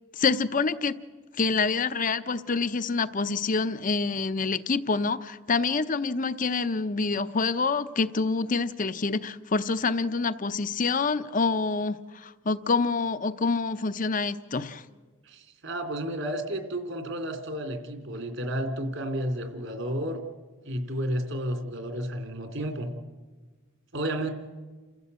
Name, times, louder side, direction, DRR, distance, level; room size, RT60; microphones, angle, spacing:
voice 1, 0.1-0.9 1.4-14.8, left 4 dB, 40° left, 13 dB, 0.7 m, -27 dB
voice 2, 15.3-20.2 20.6-22.9 23.9-24.3, right 1 dB, 65° right, 6 dB, 2.8 m, -32 dB
28.5 x 15.0 x 8.1 m, 1.4 s
head